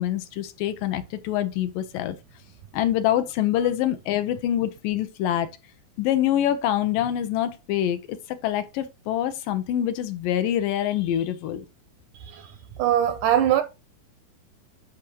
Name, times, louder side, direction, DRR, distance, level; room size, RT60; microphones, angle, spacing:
voice 1, 0.0-2.2 2.7-5.5 6.0-8.0 8.4-11.7, left 11 dB, 80° left, 2.4 m, -25 dB
voice 2, 12.2-12.5 12.8-13.6, right 11 dB, 75° right, 1.9 m, -21 dB
10.5 x 5.0 x 2.9 m
omnidirectional pair, 4.1 m